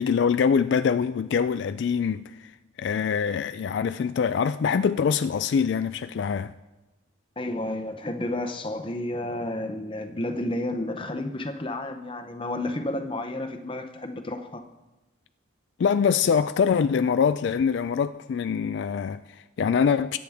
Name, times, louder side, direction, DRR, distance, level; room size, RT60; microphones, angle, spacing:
voice 1, 0.0-2.5 2.8-6.5 15.8-20.2, left 6 dB, 65° left, 0.3 m, -24 dB
voice 2, 7.4-14.6, left 1 dB, 25° left, 0.7 m, -31 dB
21.5 x 8.4 x 3.5 m
head